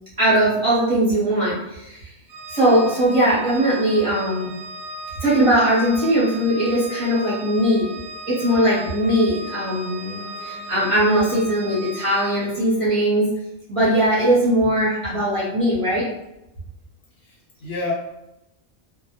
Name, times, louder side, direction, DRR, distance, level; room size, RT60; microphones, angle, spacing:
voice 1, 0.2-2.1 2.5-4.5 5.2-7.9 8.3-13.3 13.7-16.0, right 1 dB, 35° right, -9 dB, 0.7 m, -20 dB
Organ, 2.3-12.7, right 2 dB, 90° right, 0.9 m, -37 dB
voice 2, 17.2-17.9, left 3 dB, 65° left, -3 dB, 0.9 m, -30 dB
2.1 x 2.1 x 2.8 m, 0.90 s
omnidirectional pair, 1.2 m